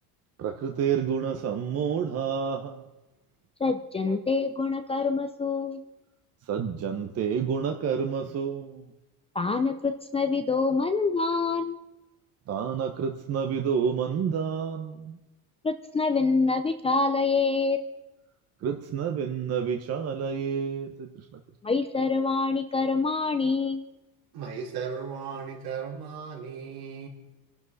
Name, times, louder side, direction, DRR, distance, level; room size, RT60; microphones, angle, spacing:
voice 1, 0.4-2.7 6.5-8.7 12.5-15.0 18.6-20.9, right 7 dB, 35° right, 4 dB, 1.1 m, -29 dB
voice 2, 3.6-5.8 9.3-11.8 15.6-17.8 21.6-23.8, left 4 dB, 15° left, 7 dB, 0.6 m, -26 dB
voice 3, 24.3-27.1, right 6 dB, 65° right, -2 dB, 4.6 m, -36 dB
28.0 x 12.0 x 4.2 m, 0.98 s
cardioid pair, 155°, 41 cm